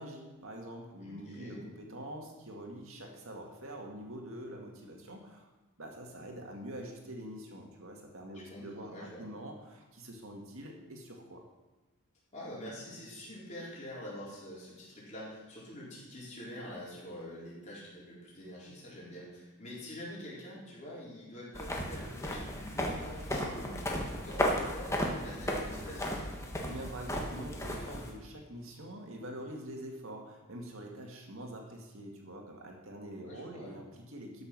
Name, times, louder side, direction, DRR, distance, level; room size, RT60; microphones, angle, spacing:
voice 1, 0.0-5.5 5.8-11.4 26.6-34.5, right 1 dB, 65° right, 1 dB, 2.1 m, -45 dB
voice 2, 1.0-1.6 8.5-9.2 12.3-26.1 33.2-33.8, left 1 dB, 30° left, -7 dB, 4.3 m, -45 dB
sound 1, 21.5-28.1, left 1 dB, 15° left, 1.3 m, -35 dB
12.5 x 6.5 x 6.2 m, 1.2 s
head